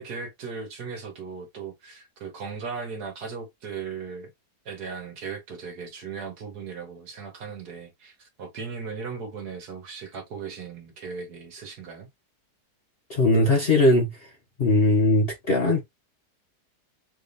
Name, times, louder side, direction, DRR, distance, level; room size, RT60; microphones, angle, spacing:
voice 1, 0.0-4.3 4.6-12.1, right 5 dB, 60° right, 1.6 m, -37 dB
voice 2, 13.1-14.3 14.6-15.8, left 2 dB, 45° left, 0.8 m, -20 dB
3.5 x 3.4 x 2.5 m
omnidirectional pair, 1.9 m